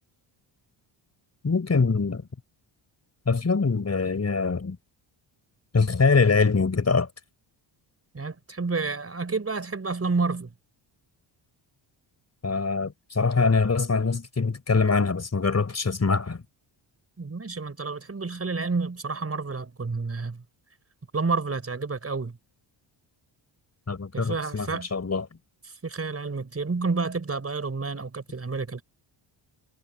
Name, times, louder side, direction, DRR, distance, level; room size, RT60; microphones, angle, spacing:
voice 1, 1.4-2.2 3.3-4.8 5.7-7.1 12.4-16.4 23.9-25.3, left 4 dB, 30° left, 4.5 m, -23 dB
voice 2, 8.1-10.5 17.2-20.4 21.1-22.4 24.1-24.9 25.8-28.8, right 4 dB, 30° right, 5.6 m, -29 dB
cardioid pair, 90°, 49 cm